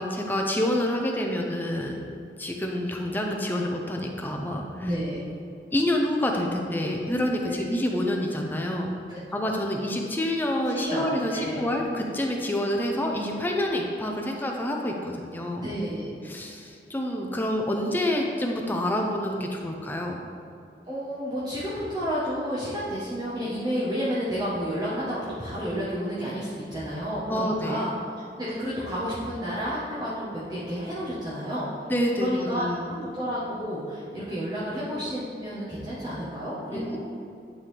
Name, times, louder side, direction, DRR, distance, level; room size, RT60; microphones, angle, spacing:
voice 1, 0.0-2.0 2.4-4.9 5.7-8.9 9.3-15.7 16.2-20.3 27.3-27.8 31.9-33.0 36.7-37.0, left 1 dB, 10° left, 1 dB, 0.5 m, -27 dB
voice 2, 4.8-5.2 7.4-7.6 9.1-9.2 10.7-11.7 15.6-16.1 20.9-27.9 28.4-31.7 32.1-37.0, equal, 20° right, -10 dB, 1.0 m, -31 dB
9.9 x 3.7 x 3.3 m, 2.5 s
head